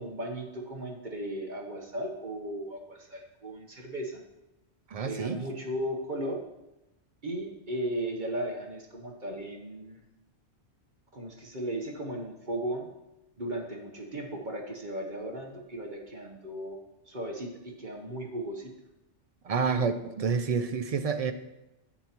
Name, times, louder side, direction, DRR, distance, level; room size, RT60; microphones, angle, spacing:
voice 1, 0.0-4.2 5.0-6.4 7.2-10.0 11.1-12.9 13.4-16.8 17.1-18.7, right 1 dB, 45° right, 1 dB, 1.1 m, -36 dB
voice 2, 4.9-5.4 19.4-21.3, right 5 dB, 65° right, 9 dB, 0.3 m, -28 dB
11.0 x 8.5 x 2.9 m, 0.93 s
omnidirectional pair, 1.2 m